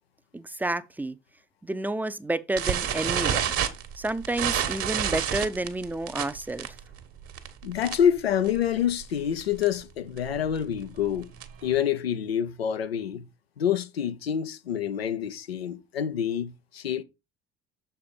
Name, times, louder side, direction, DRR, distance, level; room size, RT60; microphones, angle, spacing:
voice 1, 0.3-1.2 1.6-3.5 4.0-6.7, right 2 dB, 5° right, 0.6 m, -30 dB
sound 1, 2.6-8.2 8.5-8.7 9.0-9.1 9.4-9.7 10.2-11.7, right 9 dB, 50° right, 1.3 m, -29 dB
voice 2, 7.6-11.3 11.6-13.3 13.6-17.0, left 9 dB, 90° left, 0.6 m, -27 dB
6.8 x 4.4 x 5.2 m
hypercardioid pair, 60°, 30 cm